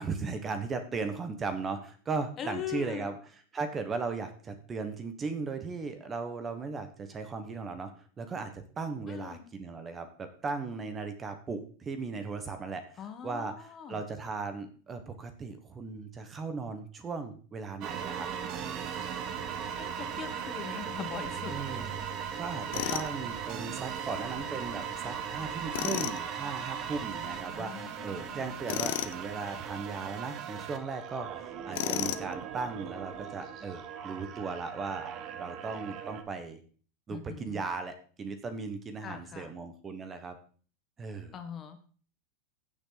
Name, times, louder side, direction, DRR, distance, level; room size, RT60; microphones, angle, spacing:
voice 1, 0.0-3.1 3.5-7.9 8.2-12.8 13.2-18.3 21.5-21.9 22.4-35.1 35.4-36.6 37.1-40.4 41.0-41.3, right 4 dB, 20° right, 8 dB, 1.3 m, -37 dB
voice 2, 2.4-3.1 9.1-9.4 13.0-14.0 19.8-21.8 22.7-23.0 27.5-28.4 37.1-37.6 39.0-39.5 41.3-41.8, left 8 dB, 25° left, 8 dB, 1.5 m, -41 dB
sound 1, 17.8-36.2, right 8 dB, 35° right, 1.3 m, -38 dB
Tools, 22.7-23.1 25.7-26.2 28.7-29.2 31.7-32.3, left 14 dB, 65° left, 0.8 m, -32 dB
15.0 x 7.1 x 4.0 m, 0.41 s
supercardioid pair, 155°, 0 cm